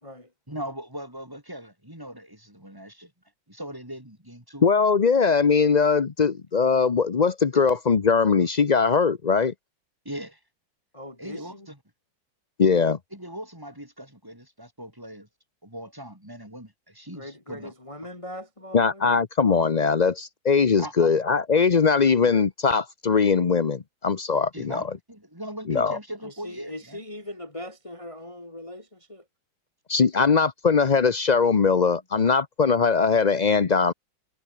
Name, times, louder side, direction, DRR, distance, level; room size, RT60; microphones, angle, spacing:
voice 1, 0.5-3.1 3.5-4.7 10.0-10.4 11.2-11.8 13.1-15.3 15.6-17.7 20.8-21.1 24.5-27.0, equal, 10° right, 5.5 m, -39 dB
voice 2, 4.6-9.5 12.6-13.0 18.7-24.9 25.7-26.0 29.9-33.9, left 5 dB, 65° left, 0.4 m, -21 dB
voice 3, 10.9-11.7 17.1-19.1 26.2-29.2, left 1 dB, 15° left, 2.5 m, -40 dB
omnidirectional pair, 2.1 m